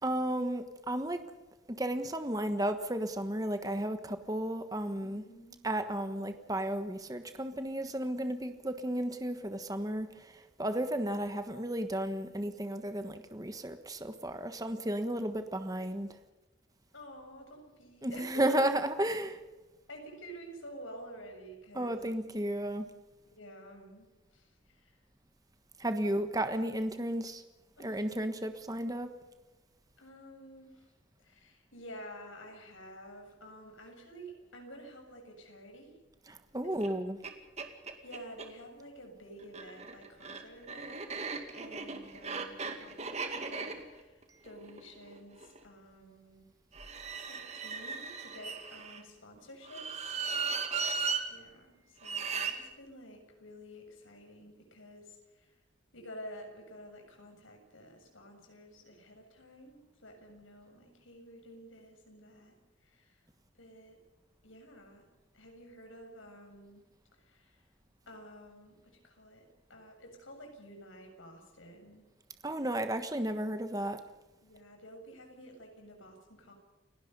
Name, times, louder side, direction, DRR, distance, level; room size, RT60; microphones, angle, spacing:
voice 1, 0.0-1.2 1.7-5.2 5.6-16.1 18.0-19.4 21.7-22.8 25.8-27.4 27.8-29.1 36.3-37.2 72.4-74.0, right 1 dB, 20° right, 8 dB, 1.3 m, -33 dB
voice 2, 5.0-5.6 10.6-10.9 16.9-18.6 19.9-22.1 23.3-24.1 24.3-25.0 27.8-28.0 30.0-30.8 31.2-35.9 36.6-36.7 38.0-41.1 41.6-46.5 47.2-50.5 51.3-55.5 55.9-62.6 62.8-63.2 63.5-64.0 64.4-65.0 65.3-66.8 67.2-67.6 68.1-72.1 74.4-76.5, equal, 85° left, 3 dB, 7.3 m, -50 dB
sound 1, 36.8-36.9 37.2-37.3 37.6-38.5 39.4-45.6 46.7-49.0 49.6-51.2 52.0-52.5, right 5 dB, 35° right, 2.2 m, -37 dB
29.5 x 18.0 x 5.5 m, 1.1 s
head